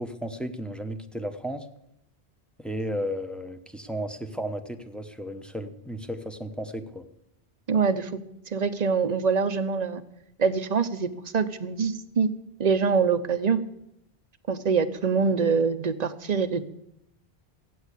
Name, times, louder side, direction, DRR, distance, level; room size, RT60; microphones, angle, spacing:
voice 1, 0.0-1.7 2.6-7.1, equal, ahead, 7 dB, 0.9 m, -34 dB
voice 2, 7.7-8.2 8.5-10.0 10.4-12.3 12.6-13.6 14.5-16.6, right 5 dB, 45° right, 11 dB, 0.9 m, -24 dB
15.0 x 9.5 x 8.3 m, 0.84 s
omnidirectional pair, 1.1 m